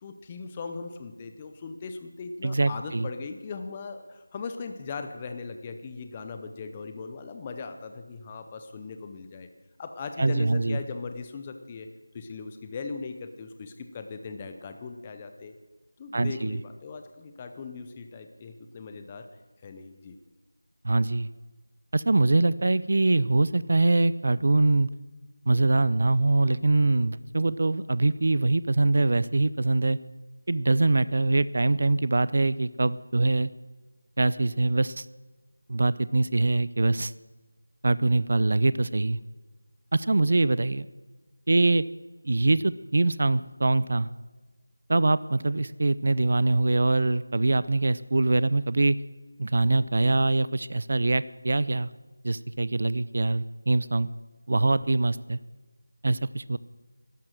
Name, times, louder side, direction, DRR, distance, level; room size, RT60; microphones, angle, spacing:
voice 1, 0.0-9.5 9.8-11.9 12.1-15.5 16.0-19.3 19.6-20.2, left 4 dB, 10° left, 7 dB, 0.5 m, -39 dB
voice 2, 2.4-3.1 10.2-10.8 16.1-16.6 20.8-21.3 21.9-24.9 25.5-30.0 30.5-33.5 34.2-35.1 35.7-37.1 37.8-39.2 39.9-40.9 41.5-41.8 42.2-44.1 44.9-49.0 49.4-51.9 52.2-54.1 54.5-55.4 56.0-56.6, right 2 dB, 40° right, 17 dB, 0.4 m, -23 dB
12.0 x 11.5 x 7.5 m, 1.2 s
figure-of-eight pair, 175°, 0 cm